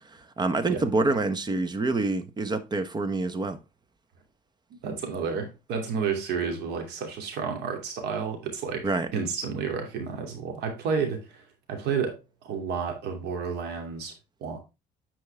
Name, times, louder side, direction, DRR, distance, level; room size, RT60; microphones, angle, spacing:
voice 1, 0.0-3.6 8.8-9.1, right 3 dB, 25° right, 1.1 m, -27 dB
voice 2, 4.8-14.1 14.4-14.6, right 6 dB, 80° right, 2.8 m, -31 dB
9.6 x 4.8 x 3.5 m
cardioid pair, 110°, 17 cm